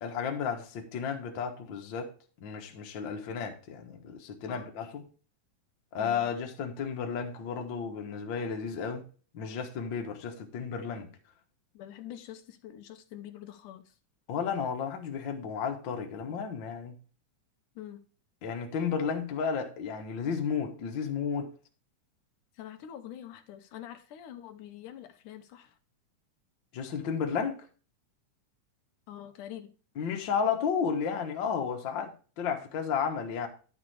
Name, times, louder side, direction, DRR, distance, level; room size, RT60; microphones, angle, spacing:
voice 1, 0.0-2.1 2.4-5.0 5.9-9.0 9.3-11.1 14.3-17.0 18.4-21.5 26.7-27.6 30.0-33.5, left 6 dB, 50° left, 1.7 m, -33 dB
voice 2, 11.7-14.0 17.8-18.0 22.5-25.8 29.1-29.7, left 11 dB, 85° left, 2.5 m, -45 dB
11.0 x 6.9 x 3.3 m
omnidirectional pair, 3.5 m